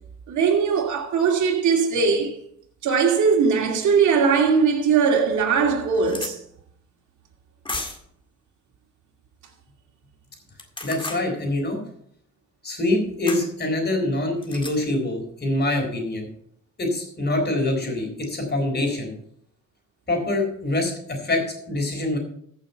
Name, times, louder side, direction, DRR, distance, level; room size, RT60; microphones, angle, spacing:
voice 1, 0.3-2.4 2.8-6.4, right 5 dB, 70° right, 2.4 m, -20 dB
sound 1, 4.7-4.8 5.3-5.4 5.6-6.3 7.7-8.1 10.5-11.2 13.3-13.5 14.4-14.8, left 2 dB, 15° left, 2.0 m, -33 dB
voice 2, 10.8-11.8 12.6-16.3 16.8-19.1 20.1-22.2, left 2 dB, 35° left, 4.0 m, -25 dB
14.5 x 6.3 x 5.5 m
cardioid pair, 90°, 30 cm